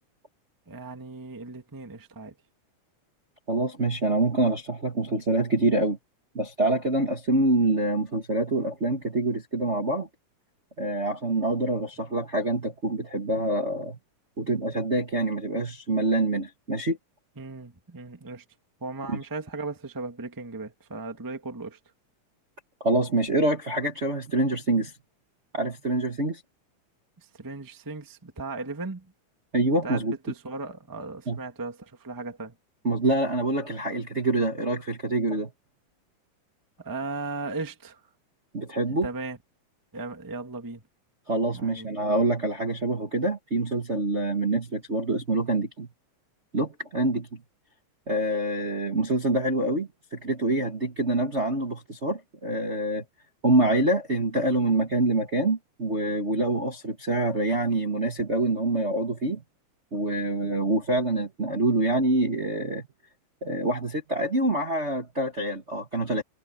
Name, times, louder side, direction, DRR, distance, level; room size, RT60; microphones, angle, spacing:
voice 1, 0.7-2.3 17.4-18.4 18.8-21.8 27.3-29.1 29.8-32.5 36.8-38.0 39.0-39.4 39.9-40.8 41.5-41.9, right 3 dB, 10° right, 1.2 m, -36 dB
voice 2, 3.5-6.0 6.3-10.1 10.8-14.0 14.4-17.0 19.1-19.2 22.8-24.9 25.5-26.4 29.5-30.2 31.3-31.4 32.8-35.5 38.5-39.1 41.3-45.9 46.5-47.4 48.1-53.0 53.4-59.4 59.9-62.9 63.4-66.2, right 2 dB, 30° right, 1.4 m, -26 dB
omnidirectional pair, 3.8 m